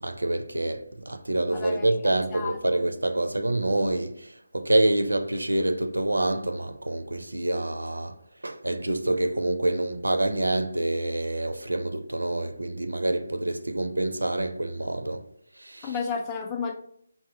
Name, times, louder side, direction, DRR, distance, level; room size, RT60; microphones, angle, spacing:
voice 1, 0.0-8.2 8.4-15.3 15.6-16.0, right 1 dB, 75° right, 0.4 m, -27 dB
voice 2, 1.5-2.8 15.8-16.7, left 5 dB, 15° left, 0.4 m, -33 dB
4.7 x 2.1 x 3.9 m
figure-of-eight pair, 150°, 0 cm